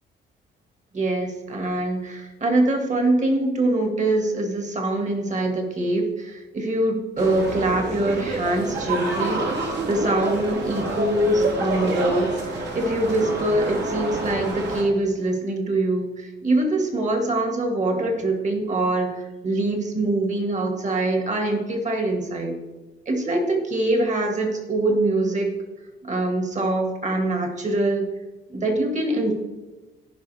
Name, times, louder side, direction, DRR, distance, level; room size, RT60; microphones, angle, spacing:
voice 1, 0.9-22.5 23.1-25.6 26.0-28.1 28.5-29.3, right 2 dB, 35° right, 3 dB, 2.1 m, -24 dB
sound 1, 7.2-14.8, right 2 dB, 60° right, 2.4 m, -28 dB
15.5 x 5.4 x 3.5 m, 1.1 s
cardioid pair, 90°, 20 cm